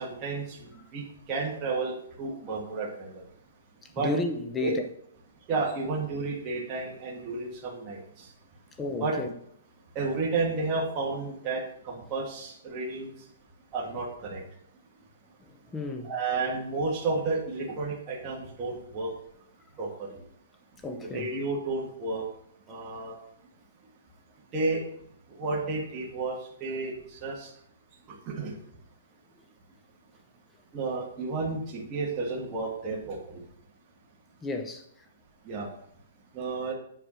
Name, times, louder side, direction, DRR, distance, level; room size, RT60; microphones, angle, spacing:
voice 1, 0.0-3.2 4.0-4.1 4.6-4.7 5.5-8.3 9.0-9.1 10.0-13.1 13.7-14.4 16.0-19.1 19.8-20.2 21.0-22.2 22.7-23.2 24.5-24.8 25.4-26.4 26.6-27.5 28.3-28.5 30.7-33.4 35.5-35.7 36.3-36.7, right 3 dB, 20° right, 1.7 m, -32 dB
voice 2, 4.0-4.8 8.8-9.3 15.4-16.1 20.8-21.3 34.4-34.8, left 2 dB, 10° left, 0.8 m, -32 dB
8.2 x 4.6 x 6.2 m
hypercardioid pair, 165°, 0 cm